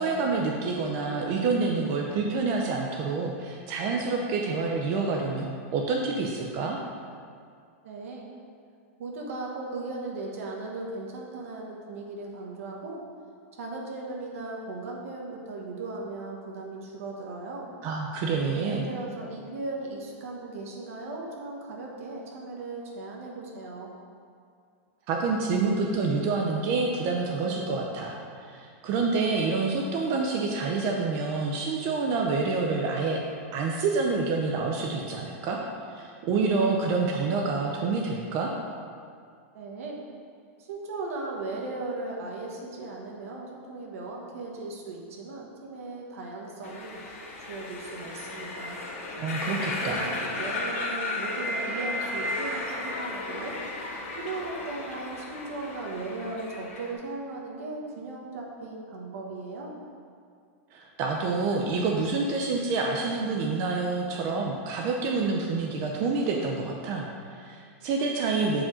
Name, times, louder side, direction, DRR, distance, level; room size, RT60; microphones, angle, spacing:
voice 1, 0.0-6.8 17.8-18.9 25.1-28.2 28.4-33.2 33.5-35.6 35.8-38.5 49.2-50.1 60.7-68.6, right 4 dB, 35° right, 0 dB, 0.6 m, -27 dB
voice 2, 7.8-8.3 9.0-13.0 13.5-17.7 18.5-23.9 39.5-40.0 40.6-47.0 47.5-48.8 49.7-53.5 54.1-59.8, right 3 dB, 75° right, -2 dB, 1.2 m, -37 dB
sound 1, 46.6-56.9, left 2 dB, 75° left, 1.3 m, -34 dB
7.5 x 4.9 x 3.7 m, 2.2 s
supercardioid pair, 165°, 8 cm